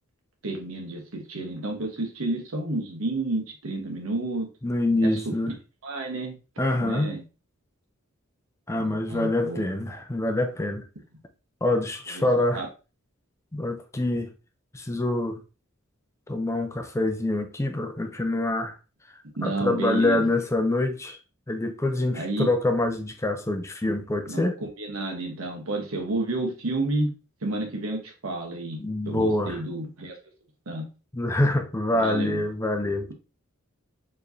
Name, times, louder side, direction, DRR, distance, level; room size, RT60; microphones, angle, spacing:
voice 1, 0.4-4.5 5.0-5.3 5.8-6.3 6.8-7.2 8.8-9.6 12.1-12.3 12.5-12.7 19.4-20.3 22.1-22.5 24.3-27.1 27.4-30.2 30.7-30.9 31.9-32.4, right 2 dB, 90° right, 1.0 m, -30 dB
voice 2, 4.6-5.5 6.6-7.2 8.7-10.8 11.6-12.6 13.5-14.3 14.7-15.4 16.3-18.7 19.4-21.2 21.5-24.6 28.8-29.6 31.1-33.1, left 2 dB, 15° left, 0.5 m, -25 dB
4.7 x 3.1 x 2.6 m
head